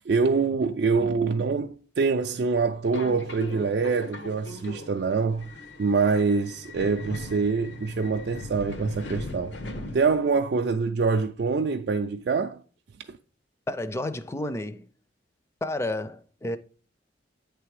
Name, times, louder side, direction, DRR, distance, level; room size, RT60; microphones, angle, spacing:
voice 1, 0.1-5.5 5.8-9.6 9.9-12.6, right 4 dB, 60° right, 0.4 m, -25 dB
Subway metro underground, 2.8-10.4, left 2 dB, 85° left, 1.0 m, -39 dB
voice 2, 13.7-14.9 15.6-16.6, left 1 dB, 15° left, 0.4 m, -31 dB
8.8 x 3.4 x 4.8 m
head